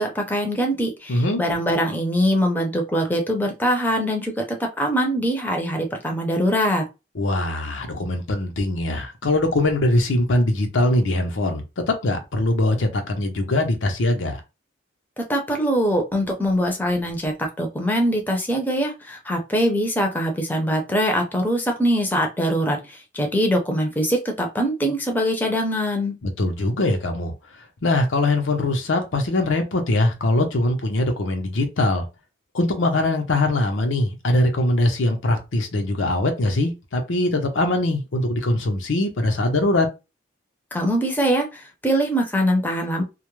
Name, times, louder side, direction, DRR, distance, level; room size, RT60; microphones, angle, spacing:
voice 1, 0.0-4.4 4.8-6.8 15.3-26.2 40.7-43.0, equal, 10° left, 0.5 m, -23 dB
voice 2, 1.1-1.4 7.2-14.4 26.2-27.3 27.8-32.0 32.5-39.9, left 2 dB, 90° left, 0.7 m, -22 dB
2.3 x 2.1 x 3.0 m
head